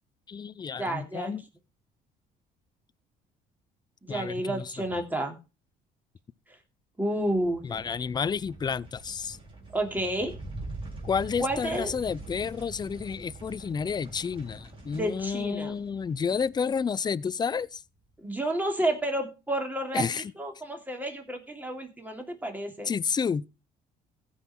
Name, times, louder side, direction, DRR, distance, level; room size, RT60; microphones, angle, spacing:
voice 1, 0.3-1.4 4.1-4.7 7.6-9.4 11.0-17.8 19.9-20.3 22.8-23.5, left 6 dB, 25° left, 0.4 m, -30 dB
voice 2, 0.8-1.3 4.0-5.3 7.0-7.8 9.7-10.3 11.4-11.9 14.9-15.7 18.2-22.9, right 1 dB, 10° right, 2.9 m, -30 dB
sound 1, 7.2-17.8, right 2 dB, 30° right, 3.8 m, -44 dB
16.0 x 5.6 x 4.3 m
cardioid pair, 110°, 17 cm